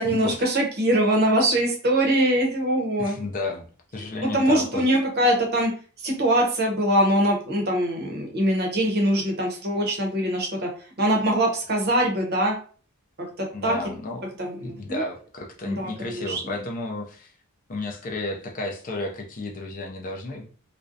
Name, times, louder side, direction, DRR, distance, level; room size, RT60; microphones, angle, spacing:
voice 1, 0.0-3.2 4.3-5.7 6.0-10.7 11.0-12.6 13.2-13.8 14.4-15.0 15.7-16.4, right 1 dB, 45° right, 1 dB, 0.7 m, -23 dB
voice 2, 3.0-3.7 3.9-4.9 13.5-17.3 17.7-20.5, left 2 dB, 35° left, 1 dB, 0.4 m, -33 dB
2.5 x 2.0 x 2.6 m, 0.40 s
head